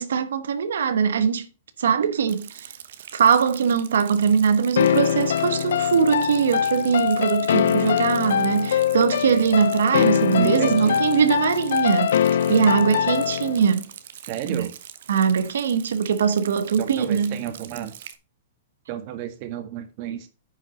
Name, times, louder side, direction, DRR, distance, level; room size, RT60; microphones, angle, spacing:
voice 1, 0.0-1.5 1.8-2.7 3.1-12.2 12.5-13.8 14.5-14.7 15.1-17.4, right 6 dB, 90° right, 1.0 m, -21 dB
Rain, 2.3-18.2, right 10 dB, 65° right, 1.1 m, -43 dB
sound 1, 4.8-13.6, left 9 dB, 80° left, 0.6 m, -23 dB
voice 2, 10.4-11.0 14.2-14.8 16.8-18.0 18.9-20.3, right 10 dB, 40° right, 1.8 m, -32 dB
10.0 x 5.9 x 4.2 m
hypercardioid pair, 155°, 0 cm